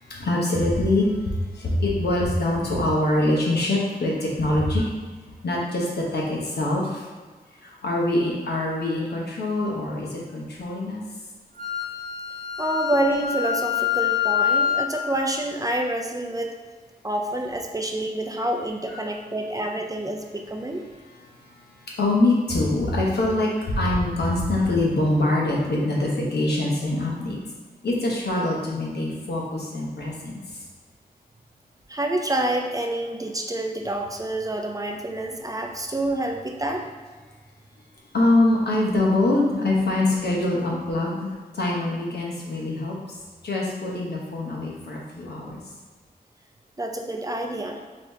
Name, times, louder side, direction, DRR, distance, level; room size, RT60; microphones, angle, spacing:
voice 1, 0.0-4.9 5.4-7.1 7.6-11.0 18.9-19.0 21.2-27.4 27.8-30.4 38.1-43.0 43.4-45.6, left 2 dB, 85° left, -3 dB, 1.1 m, -24 dB
Wind instrument woodwind instrument, 11.6-14.9, left 9 dB, 55° right, 0.8 m, -25 dB
voice 2, 12.6-16.6 17.0-20.8 31.9-36.9 46.8-47.8, right 1 dB, 20° right, 3 dB, 0.5 m, -27 dB
5.1 x 2.8 x 3.6 m, 1.4 s
wide cardioid pair, 80°, 17 cm